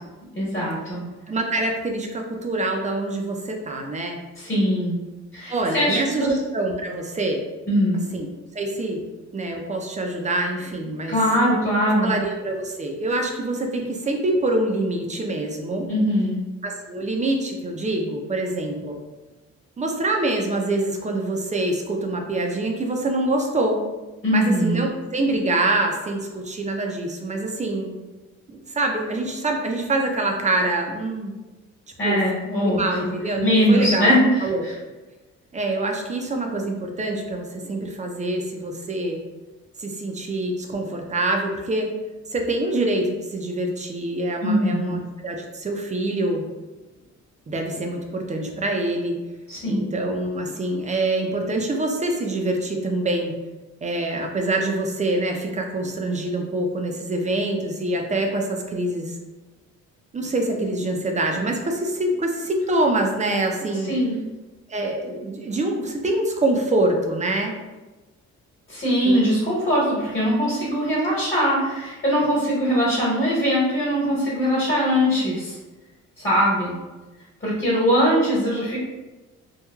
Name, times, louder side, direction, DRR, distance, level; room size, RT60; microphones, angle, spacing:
voice 1, 0.3-1.1 4.4-5.0 5.3-6.4 7.7-8.0 11.1-12.1 15.9-16.4 24.2-24.8 32.0-33.0 33.4-34.7 44.4-45.0 49.5-49.9 63.9-64.2 68.7-75.6 76.2-76.8 77.4-78.8, equal, 35° left, -7 dB, 1.2 m, -21 dB
voice 2, 1.3-4.2 5.5-7.4 8.1-8.3 8.5-9.0 9.3-11.2 12.0-15.9 16.6-19.0 19.8-23.8 24.3-27.9 28.5-31.3 32.0-32.2 32.6-34.1 34.4-34.7 35.5-39.2 39.8-41.9 42.3-46.4 47.5-49.2 49.6-53.3 53.8-59.2 60.1-63.9 64.7-67.6 69.0-69.2, right 2 dB, 25° right, 2 dB, 0.4 m, -25 dB
3.1 x 2.2 x 2.3 m, 1.2 s
cardioid pair, 90°, 30 cm